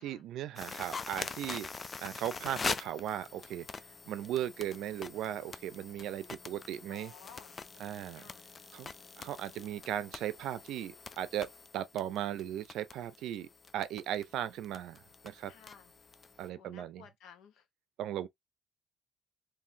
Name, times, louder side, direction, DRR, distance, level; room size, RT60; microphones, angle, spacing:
voice 1, 0.0-3.7 4.1-7.1 7.8-8.3 8.7-8.9 9.2-13.5 13.7-15.5 16.4-17.1 18.0-18.3, right 11 dB, 75° right, 0.5 m, -37 dB
sound 1, 0.6-16.5, left 4 dB, 20° left, 0.3 m, -44 dB
voice 2, 6.9-7.6 8.1-8.4 15.5-15.9 16.5-17.6, left 8 dB, 80° left, 0.9 m, -55 dB
3.8 x 2.8 x 2.6 m
cardioid pair, 180°, 0 cm